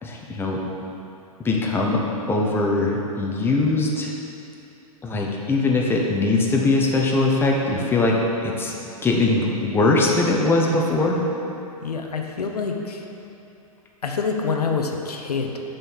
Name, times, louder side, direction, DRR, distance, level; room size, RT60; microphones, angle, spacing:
voice 1, 0.0-0.6 1.4-4.1 5.0-8.2 8.4-8.7 9.0-11.2, left 2 dB, 10° left, -2 dB, 1.0 m, -21 dB
voice 2, 11.8-13.1 14.0-15.6, left 5 dB, 80° left, 2 dB, 0.9 m, -26 dB
6.8 x 5.6 x 6.3 m, 2.9 s
hypercardioid pair, 115°, 19 cm